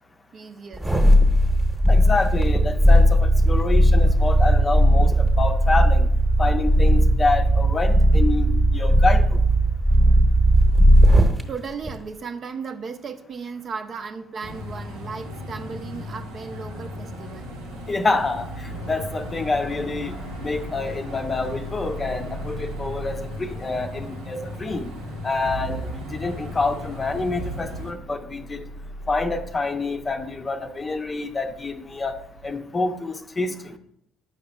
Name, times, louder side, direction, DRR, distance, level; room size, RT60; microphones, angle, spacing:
voice 1, 0.3-0.8 11.5-17.5, right 5 dB, 50° right, 7 dB, 0.6 m, -35 dB
sound 1, 0.7-11.4 11.8-12.0, equal, 15° right, 1.0 m, -17 dB
voice 2, 1.9-6.1 6.4-9.4 17.9-24.9 25.2-28.6 29.1-33.7, left 3 dB, 30° left, 7 dB, 0.6 m, -27 dB
sound 2, 14.4-27.9, equal, 85° right, 0.9 m, -36 dB
sound 3, 18.7-32.5, equal, 90° left, 0.7 m, -41 dB
8.5 x 5.7 x 2.2 m, 0.73 s
hypercardioid pair, 50°, 0 cm